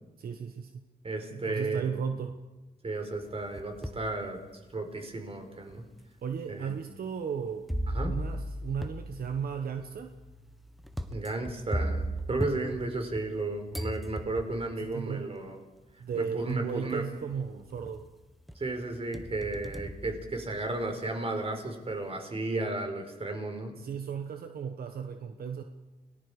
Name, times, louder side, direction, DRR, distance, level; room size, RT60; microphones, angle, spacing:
voice 1, 0.2-0.7 1.3-2.4 6.2-7.7 8.0-10.1 14.8-15.3 16.0-18.0 23.7-25.6, right 7 dB, 70° right, 6 dB, 1.2 m, -35 dB
voice 2, 1.0-1.8 2.8-4.4 4.7-5.8 6.5-6.7 7.9-8.1 11.1-15.6 16.1-17.0 18.5-23.7, right 2 dB, 35° right, 4 dB, 4.5 m, -33 dB
sound 1, 3.2-4.1 4.7-4.8 5.7-5.8 7.7-13.4 13.7-14.7 15.9-16.0 16.5-16.9 17.3-18.1 18.5-20.9, right 1 dB, ahead, 1.3 m, -36 dB
29.5 x 19.0 x 5.0 m, 1.1 s
cardioid pair, 100°, 16 cm